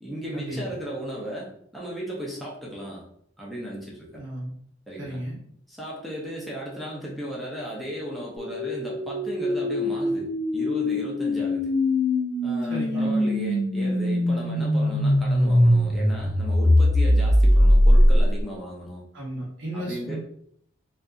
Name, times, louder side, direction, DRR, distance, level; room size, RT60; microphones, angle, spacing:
voice 1, 0.0-3.0 3.4-4.2 4.9-5.2 5.7-11.7 12.4-19.0 19.7-20.2, equal, ahead, -5 dB, 0.4 m, -36 dB
voice 2, 4.1-4.5 5.0-5.4 12.6-13.2 19.1-20.2, right 1 dB, 70° right, -5 dB, 0.7 m, -34 dB
sound 1, 8.4-18.4, left 1 dB, 70° left, 0.7 m, -21 dB
2.6 x 2.4 x 2.3 m, 0.68 s
head